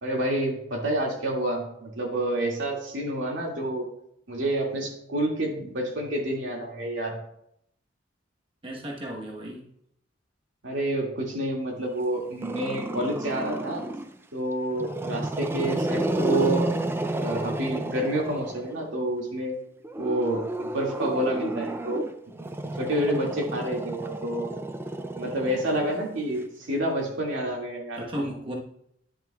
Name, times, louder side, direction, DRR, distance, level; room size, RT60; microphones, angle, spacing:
voice 1, 0.0-3.8 4.3-7.2 10.6-13.8 14.3-16.7 17.2-19.6 20.0-22.1 22.4-24.5 25.1-28.3, right 1 dB, 85° right, -1 dB, 2.1 m, -28 dB
voice 2, 8.6-9.6 15.6-16.0 27.9-28.6, equal, 30° right, -1 dB, 1.1 m, -35 dB
Growling, 12.4-14.2 14.7-18.9 19.8-26.4, right 1 dB, 10° right, 0.4 m, -31 dB
10.5 x 7.1 x 2.3 m, 0.73 s
head